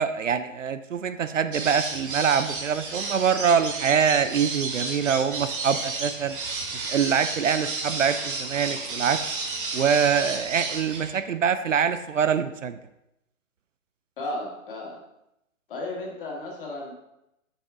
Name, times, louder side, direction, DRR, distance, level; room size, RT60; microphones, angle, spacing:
voice 1, 0.0-6.4 6.7-9.2 9.7-12.8, right 7 dB, 65° right, 12 dB, 0.5 m, -24 dB
sound 1, 1.5-11.1, right 3 dB, 40° right, 1.2 m, -32 dB
voice 2, 14.2-15.0 15.7-16.9, left 2 dB, 40° left, -2 dB, 1.9 m, -34 dB
7.0 x 5.6 x 3.5 m, 0.87 s
figure-of-eight pair, 145°, 41 cm